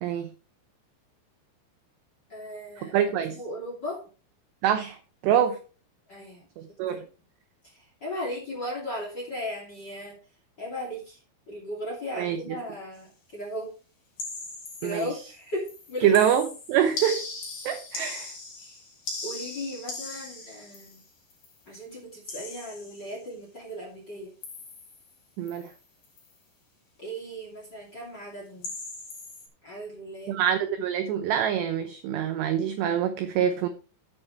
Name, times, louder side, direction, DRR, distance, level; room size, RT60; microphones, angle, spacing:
voice 1, 2.3-2.9 3.3-4.1 6.1-6.5 6.9-7.1 7.6-10.2 10.6-11.2 11.5-13.8 14.8-16.3 18.6-18.8 19.2-21.0 21.7-24.4 27.0-28.7 29.6-30.4, equal, 30° left, 2.3 m, -37 dB
voice 2, 2.8-3.4 4.6-5.0 5.2-5.6 6.8-7.0 12.2-12.4 14.8-15.1 16.0-17.2 17.7-18.3 25.4-25.7 30.3-33.7, right 9 dB, 85° right, 2.5 m, -25 dB
sound 1, 14.2-15.4 15.7-21.6 22.3-23.2 24.4-25.1 25.5-25.8 26.0-26.3 28.6-29.5, left 3 dB, 45° left, 4.0 m, -39 dB
11.0 x 8.7 x 3.3 m
omnidirectional pair, 6.0 m